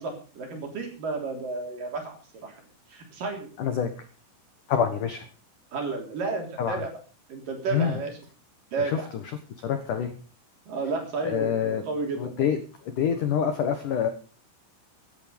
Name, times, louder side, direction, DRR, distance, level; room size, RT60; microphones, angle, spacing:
voice 1, 0.0-2.2 2.4-2.6 2.9-3.5 5.7-6.9 7.3-8.2 8.7-9.1 10.7-12.4, right 4 dB, 45° right, 3 dB, 4.5 m, -32 dB
voice 2, 3.6-3.9 4.7-5.3 6.6-6.8 7.7-8.0 8.8-9.0 9.6-10.1 11.2-11.8 12.2-12.6 13.0-14.1, left 8 dB, 80° left, 8 dB, 1.8 m, -26 dB
17.0 x 11.0 x 5.3 m, 0.37 s
omnidirectional pair, 5.9 m